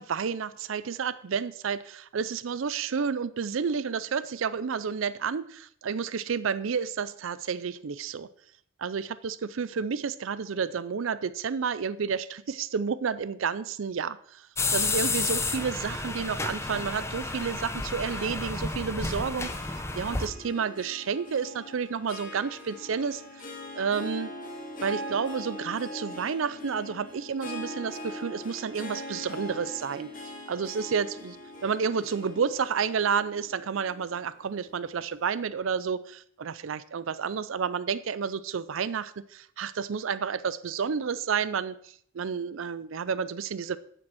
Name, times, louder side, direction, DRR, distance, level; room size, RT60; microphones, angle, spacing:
voice 1, 0.0-8.3 8.8-14.5 14.7-23.5 23.7-24.3 24.8-30.1 30.5-31.4 31.6-43.8, right 6 dB, 85° right, 16 dB, 0.5 m, -30 dB
sound 1, 14.6-20.3, left 3 dB, 15° left, 0.8 m, -31 dB
Harp, 16.6-35.1, left 1 dB, 45° left, 2.0 m, -42 dB
8.8 x 7.6 x 6.2 m, 0.62 s
head